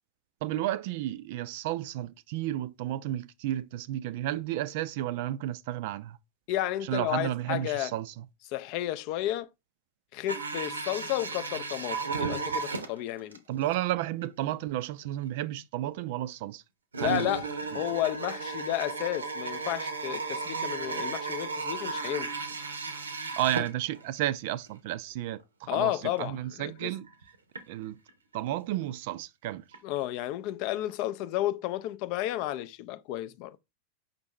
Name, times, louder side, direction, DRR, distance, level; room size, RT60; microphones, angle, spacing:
voice 1, 0.4-6.2 6.8-8.2 13.5-16.6 17.0-17.3 17.7-17.8 23.4-27.1 27.7-28.0 28.3-29.6, right 13 dB, 50° right, 0.3 m, -32 dB
voice 2, 6.5-7.9 8.5-9.5 10.1-13.4 17.0-17.5 17.7-22.3 25.7-26.9 29.8-33.6, left 14 dB, 45° left, 0.3 m, -32 dB
sound 1, 10.3-13.4 13.7-13.8 14.2-14.3 15.0-15.1 16.9-24.3 24.6-24.7 25.4-25.5 26.0-26.2 26.6-27.6 28.1-28.5 29.7-29.8 30.0-30.1, right 4 dB, 75° right, 0.7 m, -34 dB
5.3 x 2.6 x 3.2 m
figure-of-eight pair, 90°, 0 cm